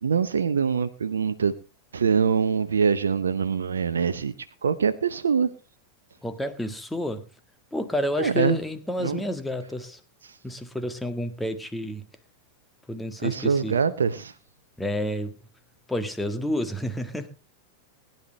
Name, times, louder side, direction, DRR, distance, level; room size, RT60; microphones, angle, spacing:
voice 1, 0.0-1.5 1.9-4.3 4.6-5.5 8.2-8.6 9.0-9.2 10.2-10.4 13.2-14.3, right 6 dB, 70° right, 0.8 m, -24 dB
voice 2, 6.2-7.3 7.7-10.0 10.4-12.1 12.9-13.8 14.8-15.4 15.9-17.3, left 1 dB, 5° left, 1.7 m, -30 dB
21.0 x 10.5 x 3.3 m
figure-of-eight pair, 90°, 0 cm